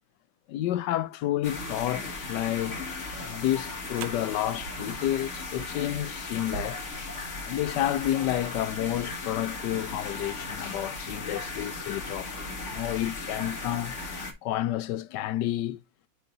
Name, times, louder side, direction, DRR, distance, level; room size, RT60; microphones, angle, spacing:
voice 1, 0.5-2.8 3.2-6.8 7.5-12.3 12.7-14.0 14.4-15.8, left 13 dB, 75° left, 1.1 m, -30 dB
sound 1, 1.4-14.3, left 3 dB, 40° left, 1.6 m, -37 dB
sound 2, 2.8-8.1, right 10 dB, 75° right, 1.3 m, -46 dB
sound 3, 5.5-8.6, right 1 dB, ahead, 0.7 m, -57 dB
9.3 x 3.1 x 3.8 m
omnidirectional pair, 2.1 m